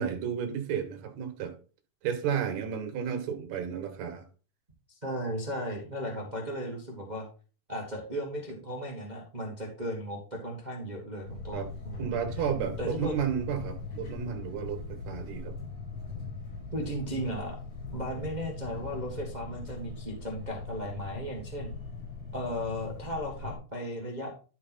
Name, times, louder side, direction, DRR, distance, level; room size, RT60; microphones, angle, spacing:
voice 1, 0.0-1.5 2.0-4.2 11.5-11.7 12.0-15.5, right 8 dB, 60° right, 2.4 m, -32 dB
voice 2, 4.9-7.2 7.7-12.2 12.8-13.2 16.7-17.6 17.9-21.7 22.3-24.3, equal, 35° right, 0.7 m, -36 dB
sound 1, 11.3-23.6, left 4 dB, 85° left, 4.4 m, -40 dB
11.5 x 4.5 x 4.1 m
omnidirectional pair, 4.0 m